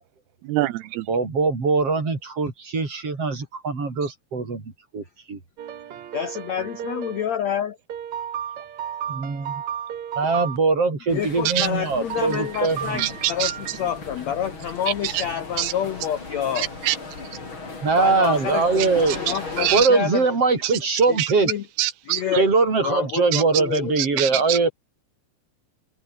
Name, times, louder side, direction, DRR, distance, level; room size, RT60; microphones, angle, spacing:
voice 1, 0.5-1.1 11.6-11.7 13.0-13.5 15.0-15.2 15.6-15.7 16.6-17.0 18.8-19.9 20.6-20.7 21.2-21.3 21.8-22.2 23.3-23.4 24.0-24.6, right 14 dB, 80° right, 2.8 m, -25 dB
voice 2, 1.1-5.4 9.1-9.5 10.2-13.1 17.8-19.2 19.7-21.5 22.3-24.7, right 4 dB, 35° right, 5.7 m, -22 dB
sound 1, 5.6-7.2 7.9-10.6 12.1-13.9, right 9 dB, 50° right, 2.7 m, -33 dB
voice 3, 6.1-7.8 11.1-16.7 18.0-20.2 21.1-21.6 22.1-22.5 22.8-24.2, left 9 dB, 65° left, 1.8 m, -28 dB
sound 2, 11.1-19.9, left 3 dB, 30° left, 5.2 m, -37 dB
open air
omnidirectional pair, 4.6 m